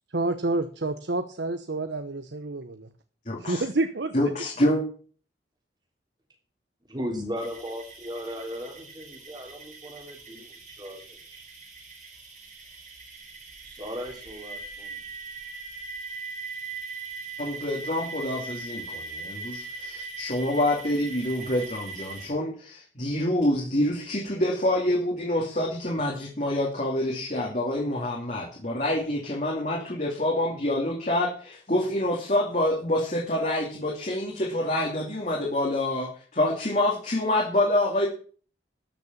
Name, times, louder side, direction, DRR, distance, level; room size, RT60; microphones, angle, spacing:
voice 1, 0.1-2.9 3.4-4.1, right 2 dB, 70° right, 10 dB, 1.0 m, -28 dB
voice 2, 3.3-3.6 4.1-4.8 17.4-38.1, left 1 dB, 40° left, -3 dB, 2.7 m, -27 dB
voice 3, 6.9-10.4 10.7-11.4 13.6-15.0, equal, 20° right, 2 dB, 3.5 m, -37 dB
sound 1, 7.4-22.3, right 3 dB, 40° right, 6.7 m, -40 dB
13.5 x 6.9 x 7.3 m, 0.43 s
head